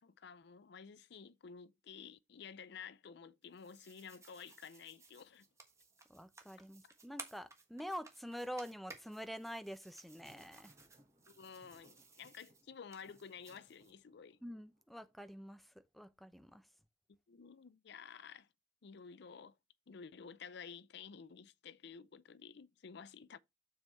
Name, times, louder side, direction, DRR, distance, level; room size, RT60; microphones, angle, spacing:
voice 1, 0.0-5.5 11.3-14.4 17.1-18.5 18.8-19.5 19.9-23.4, left 6 dB, 65° left, 0.5 m, -52 dB
sound 1, 3.4-13.9, right 3 dB, 15° right, 1.3 m, -58 dB
voice 2, 6.1-10.7 14.4-16.7, equal, ahead, 0.6 m, -47 dB
Thunder, 10.0-15.8, equal, 35° right, 3.2 m, -70 dB
7.2 x 4.6 x 4.2 m
head